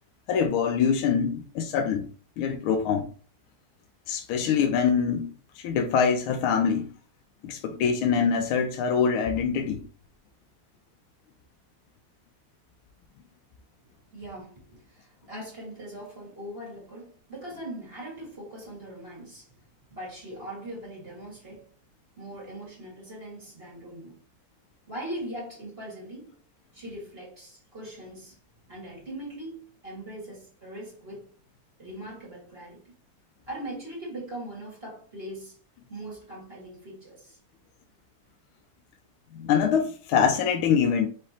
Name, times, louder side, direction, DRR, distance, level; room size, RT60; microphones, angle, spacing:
voice 1, 0.3-2.1 2.4-3.1 4.1-5.3 5.6-6.9 7.4-9.8 39.3-41.1, left 6 dB, 80° left, 1.4 m, -24 dB
voice 2, 14.1-19.5 19.9-21.7 22.2-24.2 24.9-26.3 26.7-28.4 28.7-31.3 31.8-32.8 33.5-35.6 35.9-37.4, right 1 dB, 30° right, 1.9 m, -40 dB
4.9 x 3.3 x 2.8 m
omnidirectional pair, 2.3 m